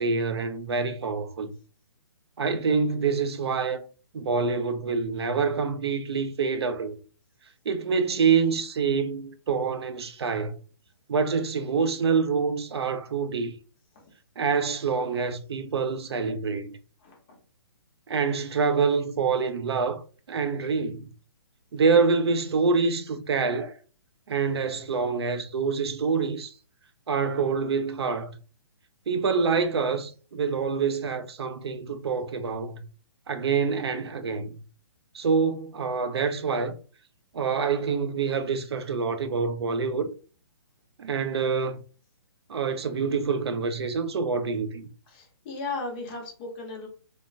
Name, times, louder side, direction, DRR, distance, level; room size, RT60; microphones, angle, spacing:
voice 1, 0.0-1.5 2.4-3.9 4.1-7.0 7.7-10.6 11.1-13.5 14.4-16.8 18.1-20.0 20.3-21.1 21.7-23.8 24.3-26.5 27.1-28.4 29.1-32.8 33.3-34.5 35.1-36.8 37.3-40.1 41.0-41.8 42.5-44.9, right 5 dB, 80° right, 0.5 m, -26 dB
voice 2, 45.1-46.9, left 3 dB, 20° left, 0.7 m, -35 dB
3.1 x 2.0 x 2.5 m
hypercardioid pair, 170°, 13 cm